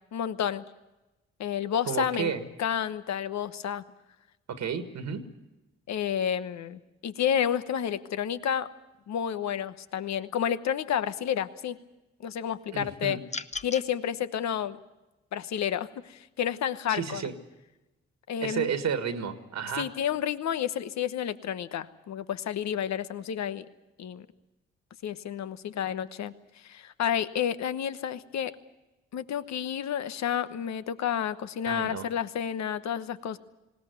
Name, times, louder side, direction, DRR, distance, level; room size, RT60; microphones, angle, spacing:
voice 1, 0.1-0.6 1.4-2.3 2.6-3.8 5.9-8.7 9.1-11.8 12.2-13.2 13.6-14.8 15.3-17.2 18.3-18.7 19.7-23.6 24.0-24.3 25.0-26.3 26.6-28.5 29.1-33.4, left 9 dB, 70° left, 13 dB, 1.0 m, -30 dB
voice 2, 1.9-2.4 4.5-5.3 12.7-13.2 16.9-17.3 18.4-19.9 31.7-32.1, right 7 dB, 70° right, 8 dB, 1.8 m, -31 dB
sound 1, 13.3-13.9, left 4 dB, 25° left, 0.8 m, -36 dB
20.0 x 17.5 x 9.5 m, 1.0 s
supercardioid pair, 50°, 29 cm